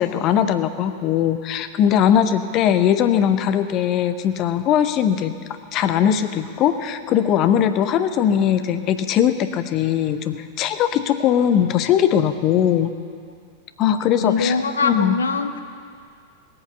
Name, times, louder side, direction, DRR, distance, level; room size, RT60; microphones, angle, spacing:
voice 1, 0.0-5.4 5.7-12.9 13.8-14.5 14.8-15.2, left 9 dB, 35° left, 10 dB, 0.8 m, -20 dB
voice 2, 14.2-15.6, left 4 dB, 75° left, 8 dB, 0.9 m, -22 dB
18.5 x 8.7 x 6.8 m, 2.3 s
figure-of-eight pair, 90°, 0 cm